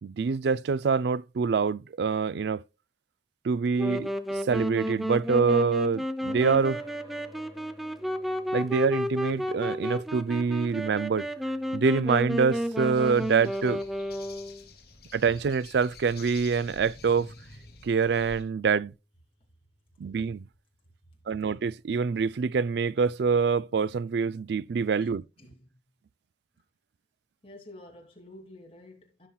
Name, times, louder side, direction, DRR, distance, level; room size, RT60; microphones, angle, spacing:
voice 1, 0.0-2.6 3.4-4.1 4.4-6.8 8.5-11.3 11.7-13.8 15.1-17.3 17.8-18.9 20.0-20.5 21.3-25.2, right 5 dB, 65° right, 0.4 m, -25 dB
Wind instrument woodwind instrument, 3.8-14.7, equal, ahead, 0.5 m, -32 dB
sound 1, 6.3-21.2, equal, 20° right, 3.6 m, -56 dB
sound 2, 12.9-18.4, left 3 dB, 55° left, 2.6 m, -49 dB
voice 2, 25.4-25.8 27.4-29.3, left 1 dB, 30° left, 2.6 m, -49 dB
16.0 x 5.7 x 2.3 m
head